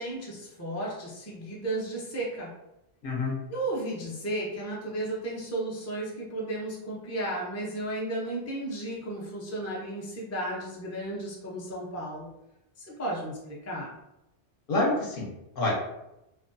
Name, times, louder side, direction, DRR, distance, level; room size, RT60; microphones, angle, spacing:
voice 1, 0.0-2.5 3.5-12.3 12.9-13.9, right 1 dB, 25° left, -4 dB, 0.3 m, -34 dB
voice 2, 3.0-3.4 14.7-15.7, left 2 dB, 55° left, -3 dB, 0.8 m, -28 dB
2.5 x 2.2 x 2.5 m, 0.89 s
omnidirectional pair, 1.2 m